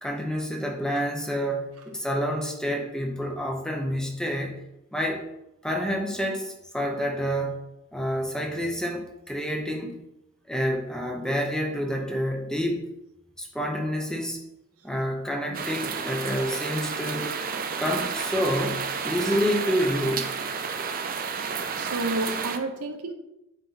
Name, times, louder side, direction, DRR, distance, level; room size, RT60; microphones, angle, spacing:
voice 1, 0.0-4.6 4.9-5.2 5.6-7.6 7.9-10.0 10.5-12.9 13.4-14.4 14.8-17.3 17.8-20.3, equal, 5° left, 2 dB, 0.7 m, -28 dB
sound 1, 15.5-22.6, right 6 dB, 40° right, 0.5 m, -31 dB
voice 2, 21.8-23.1, right 2 dB, 90° right, 5 dB, 0.9 m, -30 dB
8.0 x 4.2 x 4.0 m, 0.90 s
head